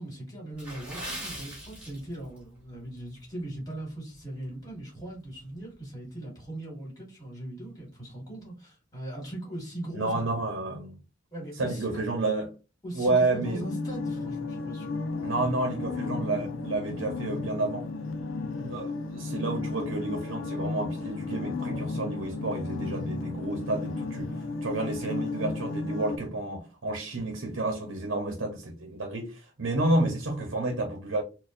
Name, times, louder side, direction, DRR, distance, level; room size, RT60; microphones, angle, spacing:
voice 1, 0.0-10.2 11.3-12.3 12.8-15.1, right 1 dB, 20° left, 2.0 m, -39 dB
Water / Splash splatter, 0.5-2.4 2.7-3.0 3.5-3.8 4.2-4.3, right 1 dB, 5° right, 1.9 m, -40 dB
voice 2, 10.0-11.0 11.6-12.5 12.9-13.6 15.2-17.9 18.6-24.3 24.6-31.2, right 2 dB, 75° right, 0.8 m, -30 dB
sound 1, 13.4-26.2, left 3 dB, 85° left, 0.5 m, -34 dB
4.2 x 2.3 x 2.5 m
head